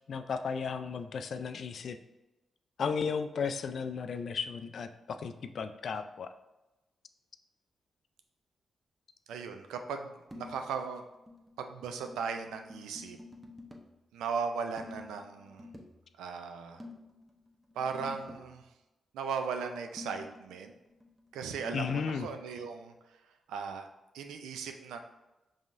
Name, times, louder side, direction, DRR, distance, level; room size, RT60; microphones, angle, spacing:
voice 1, 0.1-2.0 2.8-6.3 21.7-22.3, left 6 dB, 65° left, 9 dB, 0.3 m, -34 dB
voice 2, 9.3-11.0 11.6-13.2 14.1-15.7 16.2-16.8 17.8-18.6 19.1-20.7 21.3-22.9 23.5-23.9 24.1-25.0, right 5 dB, 85° right, 6 dB, 0.4 m, -37 dB
sound 1, 10.3-10.8 11.1-14.0 14.8-16.0 16.8-18.5 20.0-22.2, left 2 dB, 15° right, 0.8 m, -50 dB
5.4 x 3.5 x 2.5 m, 1.0 s
supercardioid pair, 40°, 0 cm